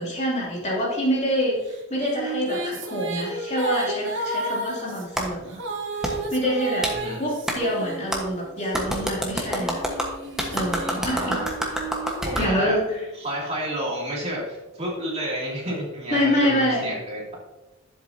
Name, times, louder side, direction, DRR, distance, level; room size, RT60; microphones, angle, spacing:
voice 1, 0.0-5.6 6.0-6.9 7.2-9.8 10.5-11.4 12.3-12.8 16.1-16.9, equal, 30° left, -4 dB, 2.8 m, -26 dB
sound 1, 1.7-8.7 9.3-13.0, right 2 dB, 60° right, 1.3 m, -33 dB
Clapping, 5.2-5.3 6.0-6.1 6.8-7.0 7.5-7.6 8.1-8.2 8.7-12.5, equal, 5° right, 1.3 m, -27 dB
voice 2, 11.0-11.5 12.2-12.8 13.2-17.4, right 1 dB, 30° right, -4 dB, 2.8 m, -30 dB
11.0 x 7.8 x 2.8 m, 1.1 s
head